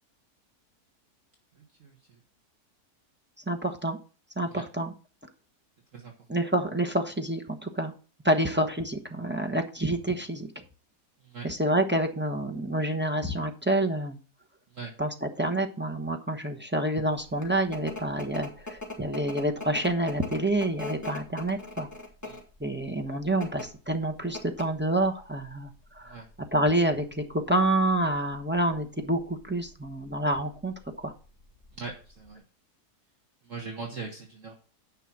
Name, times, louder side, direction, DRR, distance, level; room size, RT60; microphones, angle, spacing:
voice 1, 3.5-4.0 4.4-4.9 6.3-7.9 8.2-10.6 11.4-14.2 15.0-21.9 22.6-26.2 26.5-31.1, right 1 dB, 10° right, 3 dB, 0.9 m, -28 dB
sound 1, 17.1-32.3, left 2 dB, 10° left, 3.0 m, -42 dB
voice 2, 31.7-32.4 33.5-34.5, right 4 dB, 55° right, 1 dB, 1.8 m, -40 dB
10.0 x 5.6 x 6.0 m, 0.37 s
omnidirectional pair, 1.7 m